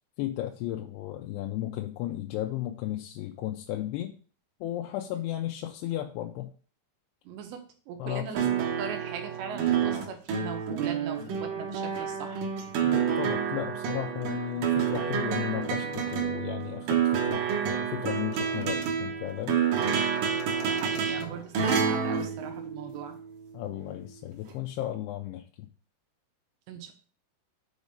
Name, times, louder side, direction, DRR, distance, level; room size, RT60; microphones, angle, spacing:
voice 1, 0.2-4.1 4.6-6.5 8.0-8.5 12.8-19.6 23.5-25.7, left 13 dB, 80° left, 2 dB, 2.6 m, -34 dB
voice 2, 7.3-12.4 20.7-23.2 26.7-26.9, right 7 dB, 85° right, 5 dB, 3.3 m, -40 dB
sound 1, 8.3-23.3 24.5-24.6, right 7 dB, 65° right, 2.2 m, -29 dB
7.2 x 4.2 x 5.1 m, 0.39 s
omnidirectional pair, 4.9 m